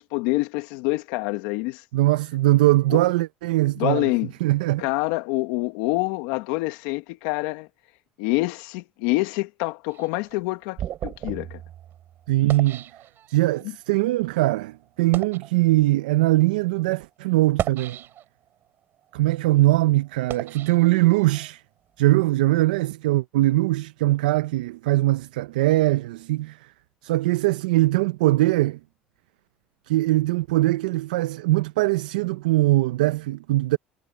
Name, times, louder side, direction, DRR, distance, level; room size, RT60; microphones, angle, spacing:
voice 1, 0.0-1.8 2.9-3.0 3.8-4.3 4.8-7.7 8.2-11.6, left 22 dB, 80° left, 1.6 m, -26 dB
voice 2, 1.9-4.1 4.4-4.9 12.3-12.8 13.3-18.0 19.1-21.6 22.0-26.6 27.0-28.8 29.9-33.8, right 17 dB, 85° right, 0.7 m, -21 dB
sound 1, 9.9-13.6 14.3-14.4 15.0-15.5 16.3-16.4 17.4-18.5 19.0-21.5, right 11 dB, 55° right, 6.8 m, -35 dB
hypercardioid pair, 75°, 4 cm